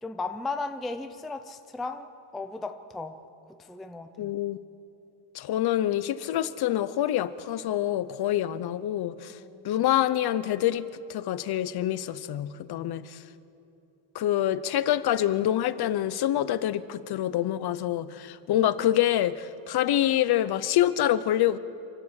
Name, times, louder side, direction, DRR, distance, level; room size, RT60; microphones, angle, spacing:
voice 1, 0.0-2.1 2.3-3.2 3.5-4.3 9.3-9.8, left 3 dB, ahead, 7 dB, 0.4 m, -36 dB
voice 2, 4.2-4.6 5.3-9.4 9.6-13.2 14.1-21.6, left 12 dB, 50° left, 15 dB, 0.7 m, -26 dB
28.0 x 11.5 x 8.2 m, 2.9 s
cardioid pair, 180°, 50 cm